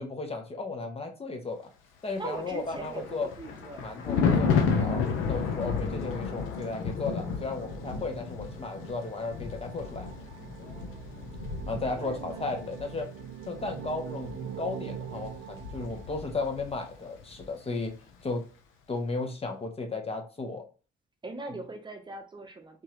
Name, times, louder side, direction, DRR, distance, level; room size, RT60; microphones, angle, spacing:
voice 1, 0.0-1.7 2.0-3.3 3.8-10.1 11.7-13.1 13.5-17.9 18.2-18.4 18.9-20.6, left 3 dB, 30° left, 4 dB, 0.8 m, -35 dB
voice 2, 2.2-4.0 5.7-6.1 10.6-11.4 11.7-12.6 21.2-22.8, right 3 dB, 25° right, 4 dB, 0.7 m, -42 dB
Thunder, 2.3-16.9 17.2-17.4, left 5 dB, 85° left, 0.7 m, -32 dB
sound 1, 6.4-16.6, right 9 dB, 80° right, 0.4 m, -44 dB
3.7 x 2.9 x 2.9 m, 0.35 s
cardioid pair, 90°, 20 cm